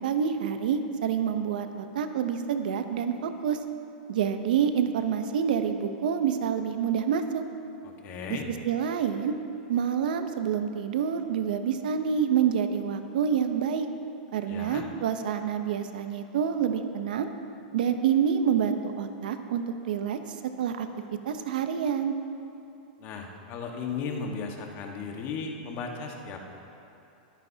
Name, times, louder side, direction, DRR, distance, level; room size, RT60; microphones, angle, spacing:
voice 1, 0.0-3.6 4.1-7.4 8.3-8.4 8.6-9.3 9.7-13.9 14.3-17.3 17.7-20.9 21.2-22.1, right 8 dB, 75° right, 8 dB, 0.8 m, -27 dB
voice 2, 7.8-8.5 14.4-14.8 23.0-26.4, left 5 dB, 40° left, 2 dB, 1.5 m, -36 dB
21.0 x 9.1 x 2.8 m, 2.9 s
supercardioid pair, 135°, 5 cm